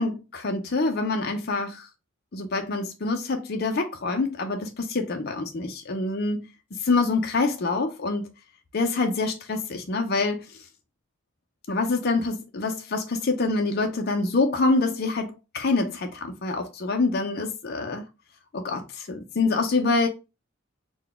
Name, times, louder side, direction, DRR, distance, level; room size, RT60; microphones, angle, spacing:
voice 1, 0.0-1.9 2.3-8.3 8.7-10.5 11.7-18.1 18.5-20.1, left 3 dB, 50° left, 0.5 m, -26 dB
3.9 x 2.2 x 3.3 m
head